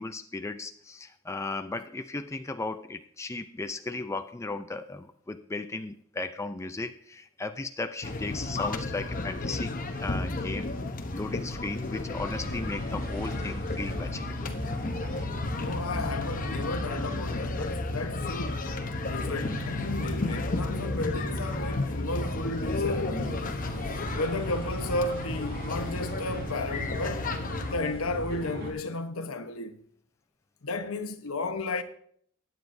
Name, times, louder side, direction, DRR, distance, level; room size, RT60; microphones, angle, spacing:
voice 1, 0.0-9.7 10.0-10.7 11.1-14.4, left 3 dB, 15° left, 0.4 m, -36 dB
sound 1, 8.0-27.7, left 2 dB, 40° left, 0.9 m, -33 dB
sound 2, 12.1-28.7, equal, 50° right, 4.4 m, -39 dB
voice 2, 15.5-18.8 19.0-23.6 24.2-27.3 27.7-29.8 30.6-31.8, left 2 dB, 75° left, 1.0 m, -33 dB
20.5 x 9.2 x 2.7 m
head